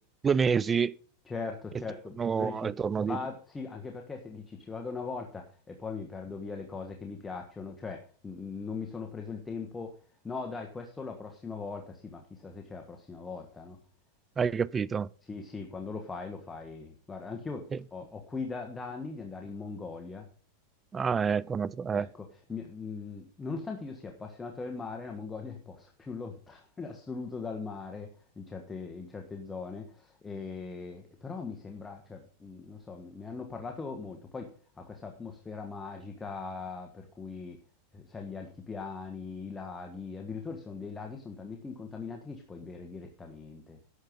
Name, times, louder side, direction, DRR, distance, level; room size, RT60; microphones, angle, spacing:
voice 1, 0.2-0.9 2.2-3.2 14.4-15.1 20.9-22.1, right 6 dB, 20° right, 0.5 m, -28 dB
voice 2, 1.3-2.7 3.1-10.0 10.2-13.8 15.3-20.2 21.9-28.1 28.4-37.6 37.9-43.8, left 4 dB, 15° left, 1.5 m, -40 dB
11.5 x 7.7 x 5.3 m
supercardioid pair, 130°, 0 cm